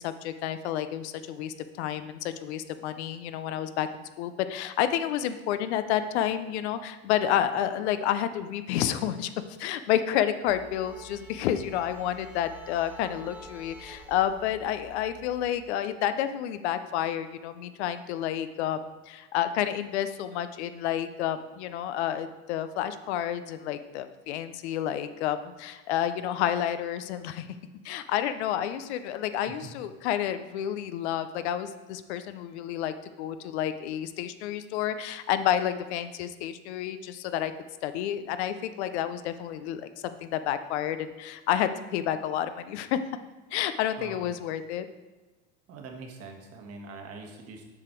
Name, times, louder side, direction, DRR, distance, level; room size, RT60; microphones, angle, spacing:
voice 1, 0.0-3.9 4.2-9.3 9.6-27.5 27.8-37.5 37.8-39.9 40.2-43.0 43.5-44.9, left 10 dB, 85° left, 11 dB, 0.6 m, -30 dB
sound 1, 10.5-15.5, equal, 5° right, 1.2 m, -48 dB
voice 2, 45.7-47.7, right 3 dB, 45° right, 3 dB, 1.4 m, -43 dB
7.2 x 5.1 x 4.4 m, 1.2 s
supercardioid pair, 115°, 33 cm